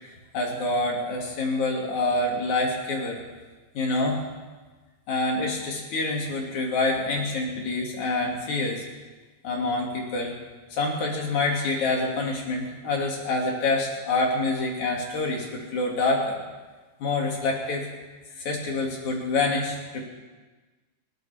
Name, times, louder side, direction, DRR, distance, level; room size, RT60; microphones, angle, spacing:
voice 1, 0.3-3.2 3.8-4.2 5.1-8.8 9.4-10.3 10.7-16.4 17.0-17.9 18.4-20.1, left 2 dB, 70° left, -1 dB, 3.8 m, -26 dB
20.0 x 17.5 x 3.5 m, 1.3 s
omnidirectional pair, 3.5 m